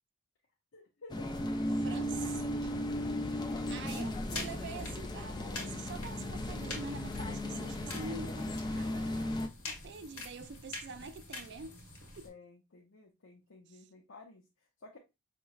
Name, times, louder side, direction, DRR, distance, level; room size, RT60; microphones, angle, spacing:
voice 1, 0.7-1.5 12.2-15.0, left 3 dB, 60° left, 0.6 m, -54 dB
sound 1, 1.1-9.5, left 1 dB, 20° left, 0.3 m, -36 dB
voice 2, 1.8-2.7 3.2-9.4 9.7-11.8 12.2-12.3 13.7-13.9, right 4 dB, 50° right, 0.4 m, -46 dB
sound 2, 3.8-12.3, left 3 dB, 80° left, 1.2 m, -46 dB
5.1 x 2.9 x 2.3 m
head